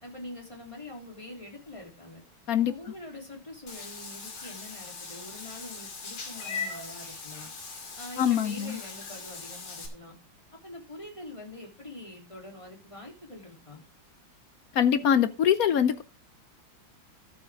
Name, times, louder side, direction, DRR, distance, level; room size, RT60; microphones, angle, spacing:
voice 1, 0.0-2.2 2.7-7.5 8.0-10.2 10.6-13.8, left 1 dB, 15° left, 3.4 m, -44 dB
Meow / Water / Bathtub (filling or washing), 3.7-9.9, left 4 dB, 90° left, 3.3 m, -40 dB
voice 2, 8.2-8.8 14.7-16.0, left 9 dB, 65° left, 0.9 m, -23 dB
12.5 x 8.5 x 3.7 m
omnidirectional pair, 2.2 m